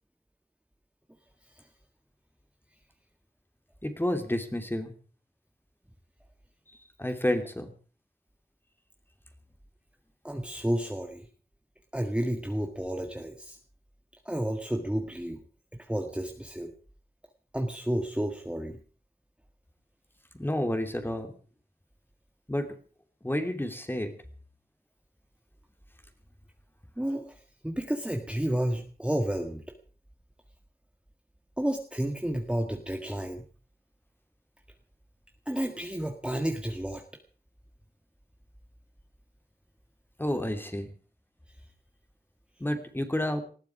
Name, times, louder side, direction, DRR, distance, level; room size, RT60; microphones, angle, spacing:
voice 1, 3.8-4.9 6.7-7.7 20.3-21.3 22.5-22.7 23.2-24.1 40.2-40.9 42.6-43.4, left 1 dB, 15° left, 7 dB, 2.9 m, -30 dB
voice 2, 10.2-11.2 11.9-13.6 14.2-15.4 15.7-16.7 17.5-18.8 27.0-29.6 31.6-33.4 35.4-37.0, right 1 dB, 5° right, 4 dB, 1.7 m, -31 dB
20.0 x 14.5 x 4.9 m, 0.40 s
wide cardioid pair, 90°, 16 cm